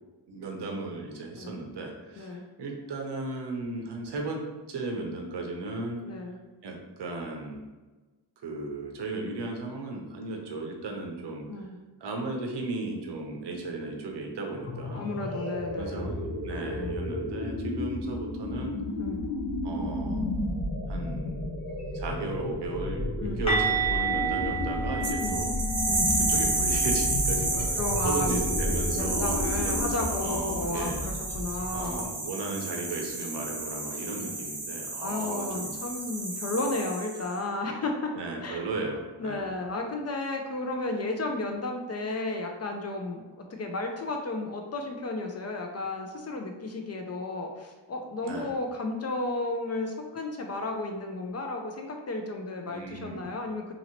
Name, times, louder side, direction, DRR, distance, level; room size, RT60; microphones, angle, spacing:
voice 1, 0.3-4.4 4.7-6.0 6.6-7.6 8.4-11.5 12.0-15.0 15.7-18.8 19.6-20.3 20.9-21.5 21.9-25.6 26.3-31.1 31.7-35.8 38.2-39.5 48.2-48.5 52.7-53.3, right 3 dB, 70° right, 2 dB, 0.7 m, -35 dB
voice 2, 6.0-6.4 11.5-11.8 14.8-16.1 16.8-17.0 19.0-19.3 23.2-23.4 25.2-25.4 25.9-26.2 27.8-32.1 34.1-34.3 35.0-38.1 38.4-38.7 39.2-53.7, left 2 dB, 40° left, 3 dB, 0.4 m, -33 dB
sound 1, 14.5-32.1, left 1 dB, 55° left, 1.2 m, -32 dB
sound 2, 23.5-29.2 29.5-29.8 30.1-30.3 33.5-33.6, right 4 dB, 15° left, 1.0 m, -32 dB
sound 3, 25.0-37.3, right 2 dB, 35° right, 0.8 m, -31 dB
2.8 x 2.8 x 2.8 m, 1.2 s
cardioid pair, 85°, 43 cm